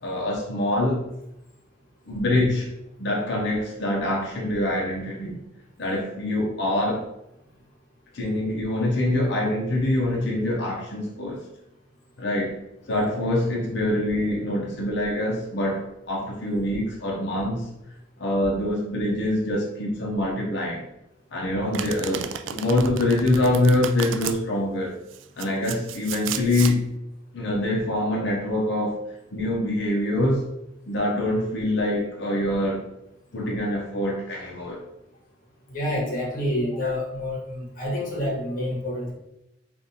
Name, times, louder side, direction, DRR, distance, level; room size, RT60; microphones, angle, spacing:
voice 1, 0.0-1.0 2.1-2.7 3.0-5.4 5.8-7.1 8.1-11.4 12.2-12.6 12.9-17.6 18.2-20.8 21.3-25.0 25.4-26.8 27.3-29.0 29.3-30.4 30.9-32.9 33.3-34.8 36.8-36.9, left 1 dB, 65° left, -2 dB, 0.7 m, -25 dB
Domestic sounds home sounds, 21.7-24.4 25.1-26.8, right 9 dB, 85° right, 0.3 m, -33 dB
voice 2, 35.7-39.1, left 1 dB, 50° left, -2 dB, 1.2 m, -28 dB
5.1 x 2.5 x 2.7 m, 0.87 s
head